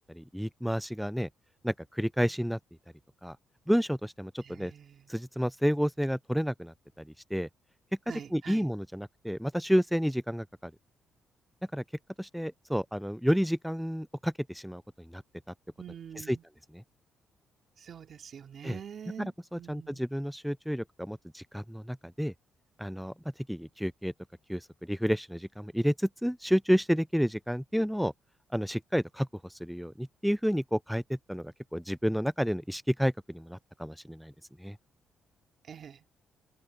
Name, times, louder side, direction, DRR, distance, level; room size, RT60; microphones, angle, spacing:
voice 1, 0.1-1.3 1.6-2.6 3.2-3.4 3.7-4.7 5.1-7.0 7.3-7.5 8.3-10.7 11.7-11.8 12.2-15.2 16.2-16.4 16.7-16.8 18.6-18.8 19.5-22.3 22.8-23.1 23.5-24.1 24.5-28.1 28.5-34.3 34.6-34.8, equal, ahead, 0.3 m, -30 dB
voice 2, 4.4-5.1 8.1-8.7 15.8-16.4 17.8-20.0 35.6-36.0, right 8 dB, 55° right, 2.8 m, -45 dB
cardioid pair, 90°, 0 cm